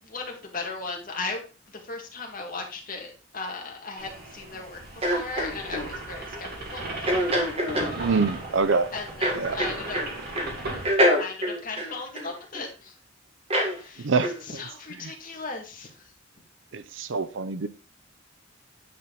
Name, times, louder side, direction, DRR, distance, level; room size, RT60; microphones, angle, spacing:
voice 1, 0.0-7.2 8.9-10.0 11.2-12.9 13.8-16.1, left 3 dB, 45° left, 2.0 m, -37 dB
sound 1, 4.0-10.9, right 2 dB, 50° right, 2.3 m, -36 dB
sound 2, 5.0-5.9 7.1-7.9 9.2-10.1 10.3-10.5 10.8-12.6 13.5-13.8 14.2-14.4, equal, 30° right, 1.8 m, -25 dB
voice 2, 8.0-8.9 9.4-9.6 14.0-14.3 16.7-17.7, right 4 dB, 65° right, 0.6 m, -25 dB
9.4 x 4.4 x 3.9 m
head